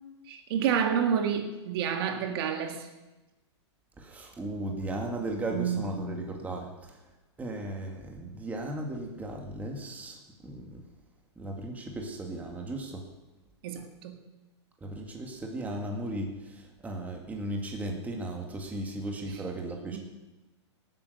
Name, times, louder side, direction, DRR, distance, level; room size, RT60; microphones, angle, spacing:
voice 1, 0.3-2.9 5.5-6.3 13.6-14.2 19.3-19.5 19.9-20.0, right 7 dB, 55° right, 5 dB, 2.0 m, -29 dB
voice 2, 4.0-7.0 7.4-10.2 10.4-10.8 11.4-13.0 14.8-20.0, right 1 dB, 10° right, 1 dB, 2.0 m, -36 dB
18.0 x 9.0 x 6.8 m, 1.1 s
hypercardioid pair, 140°, 15 cm